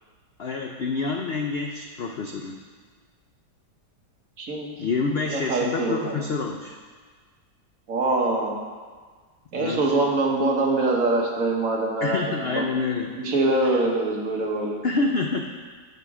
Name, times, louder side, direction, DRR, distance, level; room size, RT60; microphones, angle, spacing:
voice 1, 0.4-2.6 4.8-6.8 9.5-9.9 12.0-13.1 13.6-13.8 14.8-15.4, left 4 dB, 75° left, 2 dB, 0.5 m, -27 dB
voice 2, 4.4-4.7 5.3-6.2 7.9-8.6 9.5-12.6 13.1-14.8, right 2 dB, 55° right, -1 dB, 1.6 m, -24 dB
9.5 x 7.0 x 4.9 m, 1.5 s
omnidirectional pair, 1.8 m